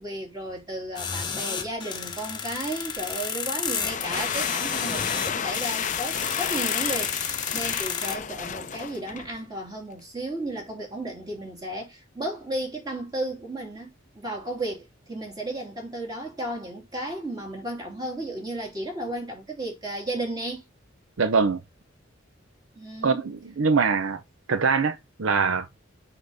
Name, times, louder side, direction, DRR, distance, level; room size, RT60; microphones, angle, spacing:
voice 1, 0.0-20.6 22.7-23.2, right 1 dB, 20° right, 2.8 m, -34 dB
sound 1, 1.0-8.2, left 6 dB, 20° left, 1.0 m, -31 dB
sound 2, 3.6-9.4, left 8 dB, 35° left, 0.5 m, -31 dB
voice 2, 21.2-21.6 23.0-24.2 24.5-25.8, right 5 dB, 65° right, 0.6 m, -23 dB
6.4 x 5.3 x 3.4 m
head